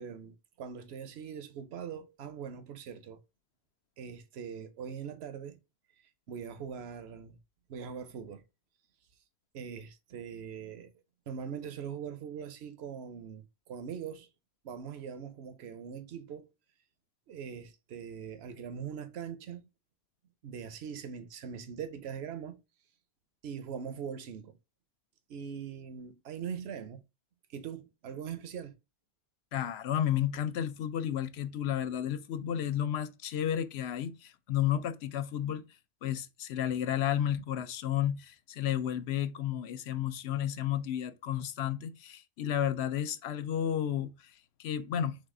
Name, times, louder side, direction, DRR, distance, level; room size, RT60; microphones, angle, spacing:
voice 1, 0.0-3.2 4.0-5.6 6.3-7.4 7.7-8.4 9.5-10.9 11.3-14.3 14.6-16.5 17.3-19.6 20.4-22.6 23.4-24.6 25.3-27.0 27.5-28.7, right 7 dB, 80° right, 0.9 m, -41 dB
voice 2, 29.5-35.6 36.0-45.3, left 10 dB, 80° left, 0.8 m, -32 dB
4.0 x 3.3 x 3.7 m
omnidirectional pair, 1.1 m